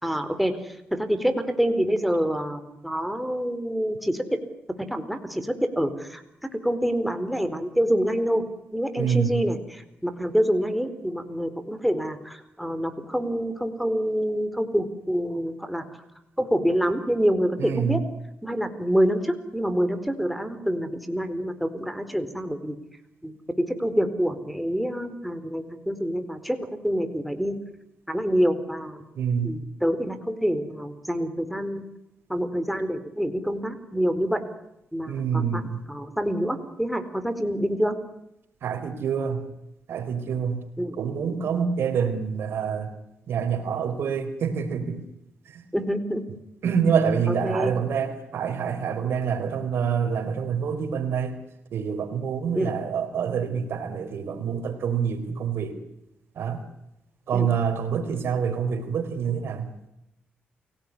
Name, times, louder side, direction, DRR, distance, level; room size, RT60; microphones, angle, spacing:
voice 1, 0.0-4.2 4.8-6.2 6.5-8.4 8.7-15.8 16.4-18.0 18.4-22.8 23.2-27.6 28.1-29.0 29.4-31.8 32.3-34.4 34.9-38.0 40.8-41.0 45.7-46.3 47.3-47.8 52.5-52.7 57.3-57.5, equal, ahead, 8 dB, 4.2 m, -26 dB
voice 2, 9.0-9.4 17.6-18.0 29.2-29.5 35.1-35.8 38.6-39.5 39.9-40.6 41.0-42.9 43.3-45.0 45.5-45.6 46.6-51.3 51.7-55.8 56.3-56.6 57.3-59.7, right 7 dB, 70° right, 8 dB, 4.0 m, -26 dB
29.5 x 18.0 x 9.9 m, 0.86 s
supercardioid pair, 60°, 4 cm